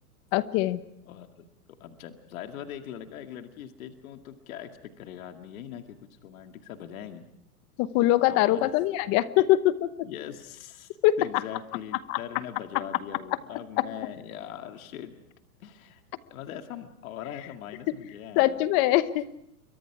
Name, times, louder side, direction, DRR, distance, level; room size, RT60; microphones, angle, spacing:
voice 1, 0.3-0.8 7.8-10.1 11.0-11.4 12.1-12.2 13.8-13.9 18.4-19.5, left 15 dB, 30° left, 15 dB, 1.0 m, -23 dB
voice 2, 1.1-1.4 1.8-6.0 6.2-7.3 8.3-8.7 9.0-9.2 10.0-15.1 15.6-16.0 16.3-18.6, left 10 dB, 60° left, 6 dB, 2.3 m, -41 dB
29.5 x 23.5 x 4.9 m, 0.81 s
hypercardioid pair, 140°, 46 cm